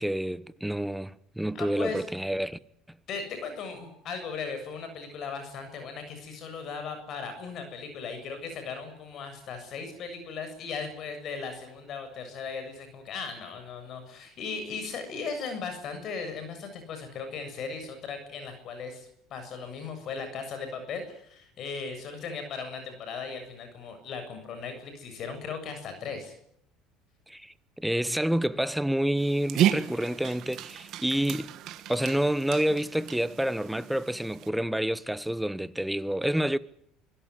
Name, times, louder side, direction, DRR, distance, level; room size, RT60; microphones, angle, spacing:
voice 1, 0.0-2.6 27.3-31.5 31.9-36.6, right 1 dB, 5° right, 1.0 m, -28 dB
voice 2, 1.5-2.0 3.1-26.3, left 5 dB, 50° left, 7.3 m, -37 dB
Dog, 29.2-34.5, right 12 dB, 55° right, 1.9 m, -32 dB
25.0 x 17.5 x 9.8 m
supercardioid pair, 110°, 0 cm